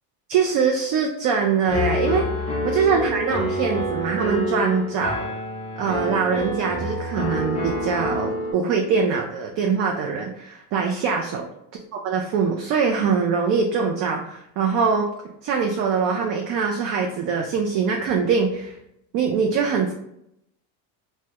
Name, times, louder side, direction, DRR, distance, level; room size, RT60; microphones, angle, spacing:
voice 1, 0.3-2.3 2.6-5.2 5.8-11.5 11.9-15.1 15.4-18.8 19.1-19.9, right 5 dB, 55° right, 2 dB, 0.4 m, -23 dB
Piano, 1.7-8.5, left 1 dB, 15° left, 0.4 m, -27 dB
2.8 x 2.1 x 3.4 m, 0.78 s
cardioid pair, 155°, 40 cm